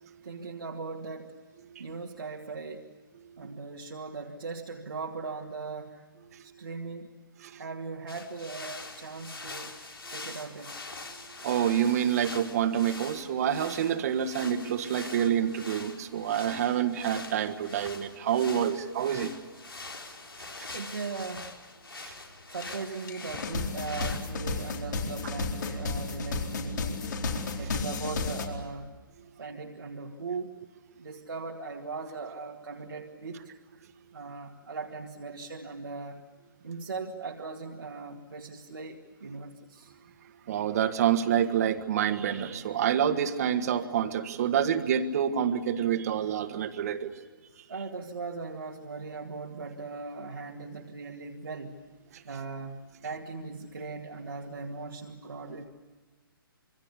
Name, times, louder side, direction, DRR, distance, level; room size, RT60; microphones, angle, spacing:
voice 1, 0.2-1.3 1.8-2.9 3.4-6.0 6.4-7.3 7.6-9.8 10.1-11.0 20.7-21.5 22.5-27.1 27.6-28.9 29.4-30.5 31.0-33.4 34.1-36.2 36.6-39.9 47.7-51.8 52.2-55.6, right 4 dB, 70° right, 0 dB, 2.2 m, -39 dB
sound 1, 8.1-24.3, left 3 dB, 80° left, 4.1 m, -44 dB
voice 2, 11.4-19.3 22.0-22.1 40.5-47.1, right 9 dB, 40° right, 9 dB, 1.8 m, -27 dB
sound 2, 22.6-22.7 23.1-28.5, left 3 dB, 55° left, 4.4 m, -32 dB
27.0 x 24.0 x 8.3 m, 1.3 s
figure-of-eight pair, 135°, 12 cm